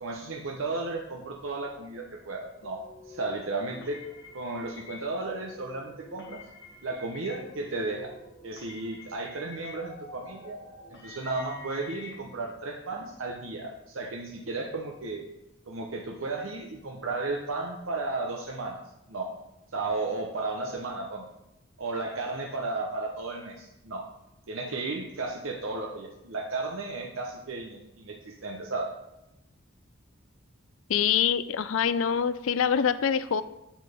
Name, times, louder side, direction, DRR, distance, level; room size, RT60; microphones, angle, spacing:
voice 1, 0.0-2.8 3.1-4.0 4.3-6.4 6.8-8.1 8.4-10.6 10.9-15.2 15.7-18.8 19.1-19.3 19.7-21.3 21.8-24.0 24.5-28.9, right 3 dB, 85° right, 1 dB, 0.9 m, -34 dB
sound 1, 2.6-12.1, left 3 dB, 65° left, 1.8 m, -48 dB
voice 2, 30.9-33.4, left 7 dB, 85° left, 14 dB, 0.4 m, -25 dB
7.6 x 7.2 x 3.5 m, 0.89 s
head